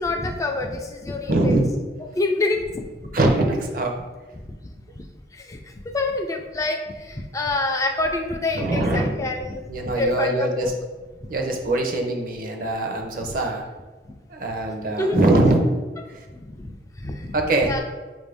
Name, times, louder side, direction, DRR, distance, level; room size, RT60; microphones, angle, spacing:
voice 1, 0.0-1.6 2.2-3.2 4.4-4.5 5.0-5.1 5.3-5.6 5.9-9.6 10.0-10.7 13.3-13.4 15.0-15.2 16.4-17.8, left 2 dB, 20° left, 3 dB, 0.3 m, -27 dB
voice 2, 1.3-1.7 3.1-4.0 8.5-9.1 9.7-10.7 11.3-13.6 14.3-15.6 16.1-16.2 17.3-17.8, right 2 dB, 50° right, 2 dB, 0.6 m, -22 dB
5.4 x 2.6 x 3.4 m, 1.3 s
head